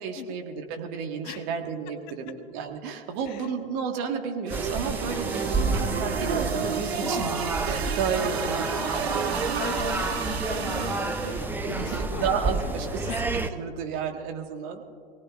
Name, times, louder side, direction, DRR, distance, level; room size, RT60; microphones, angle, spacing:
voice 1, 0.0-9.2 11.6-13.2 13.5-14.8, right 6 dB, 45° right, 4 dB, 1.7 m, -32 dB
voice 2, 2.1-2.4 3.2-3.5 5.6-5.7 7.0-7.3 8.9-9.3 9.6-13.3, left 10 dB, 45° left, 8 dB, 1.0 m, -40 dB
sound 1, 4.5-13.5, right 3 dB, 5° right, 0.7 m, -30 dB
sound 2, 4.5-11.6, right 6 dB, 85° right, 0.6 m, -32 dB
24.0 x 18.0 x 2.5 m, 2.2 s
figure-of-eight pair, 95°, 31 cm